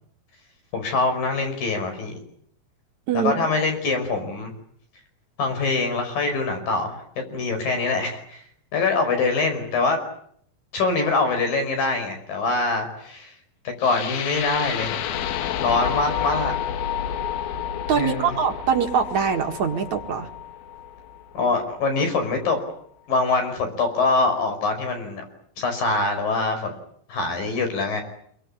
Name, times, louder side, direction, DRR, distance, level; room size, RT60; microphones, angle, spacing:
voice 1, 0.7-2.2 3.2-4.5 5.4-8.4 8.7-10.0 10.7-13.4 13.8-15.1 15.6-16.5 18.0-18.4 21.3-22.6 23.1-25.2 25.6-26.7 27.1-28.0, left 3 dB, 75° left, 6 dB, 6.8 m, -24 dB
sound 1, 13.8-21.8, left 9 dB, 90° left, 3.1 m, -30 dB
voice 2, 17.9-20.3, right 7 dB, 60° right, 4 dB, 3.0 m, -23 dB
26.5 x 23.0 x 8.6 m, 0.67 s
omnidirectional pair, 4.0 m